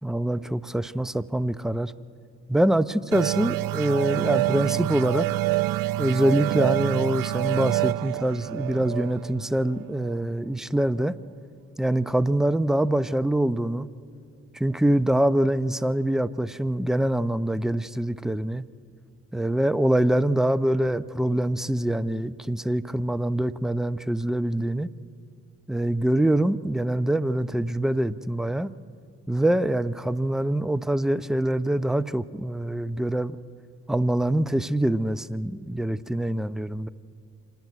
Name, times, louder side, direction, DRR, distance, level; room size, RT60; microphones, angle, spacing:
voice 1, 0.0-1.9 2.5-5.3 6.0-11.2 11.8-13.9 14.5-18.6 19.3-24.9 25.7-28.7 29.3-33.4 33.9-36.9, right 1 dB, ahead, 16 dB, 0.8 m, -24 dB
sound 1, 3.1-10.4, right 17 dB, 65° right, 0.6 m, -27 dB
25.0 x 19.0 x 9.6 m, 2.3 s
hypercardioid pair, 40°, 36 cm